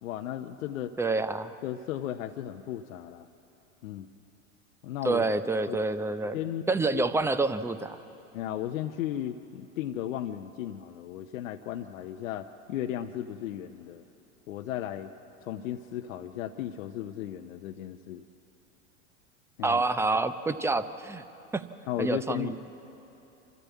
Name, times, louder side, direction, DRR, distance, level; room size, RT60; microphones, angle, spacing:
voice 1, 0.0-0.9 1.6-3.3 3.8-4.1 4.8-5.2 5.7-5.8 6.3-6.6 6.9-7.0 8.3-14.0 14.5-15.1 15.4-18.2 19.6-19.8 21.9-22.6, left 11 dB, 75° left, 6 dB, 0.8 m, -35 dB
voice 2, 1.0-1.5 5.0-6.4 6.7-8.0 19.6-21.2 21.5-21.7 22.0-22.5, right 3 dB, 5° right, 12 dB, 0.6 m, -27 dB
26.5 x 13.5 x 8.3 m, 3.0 s
hypercardioid pair, 100°, 40 cm